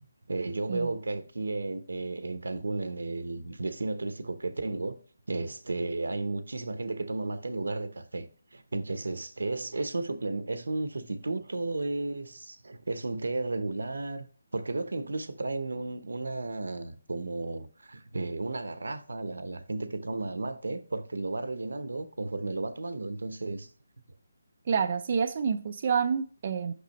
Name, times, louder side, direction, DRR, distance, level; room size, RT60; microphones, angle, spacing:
voice 1, 0.3-5.0 5.3-14.3 14.5-23.7, right 2 dB, 80° right, 0.8 m, -33 dB
voice 2, 24.7-26.7, right 6 dB, 40° right, 0.5 m, -28 dB
6.0 x 5.6 x 3.0 m
figure-of-eight pair, 160°, 0 cm